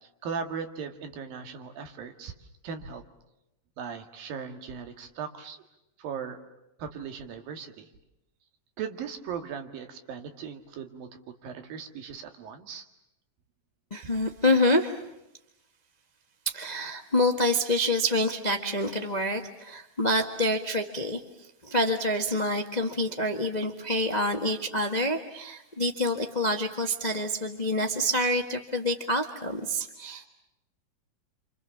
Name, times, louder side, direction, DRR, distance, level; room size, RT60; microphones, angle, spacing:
voice 1, 0.2-2.3 2.6-3.0 3.8-5.6 6.0-6.4 6.8-7.9 8.8-11.1 11.4-12.8, right 6 dB, 90° right, 6 dB, 3.8 m, -38 dB
voice 2, 13.9-15.0 16.4-21.2 21.6-30.2, left 1 dB, 65° left, 5 dB, 0.4 m, -27 dB
29.0 x 27.0 x 7.3 m, 0.88 s
omnidirectional pair, 3.9 m